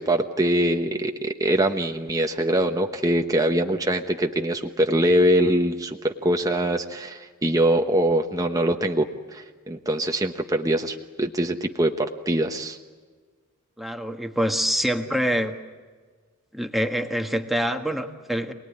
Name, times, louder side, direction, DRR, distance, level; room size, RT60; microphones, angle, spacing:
voice 1, 0.0-12.8, right 1 dB, 15° right, 3 dB, 1.1 m, -23 dB
voice 2, 13.8-15.5 16.5-18.5, equal, ahead, 4 dB, 1.6 m, -25 dB
27.5 x 20.0 x 9.9 m, 1.5 s
head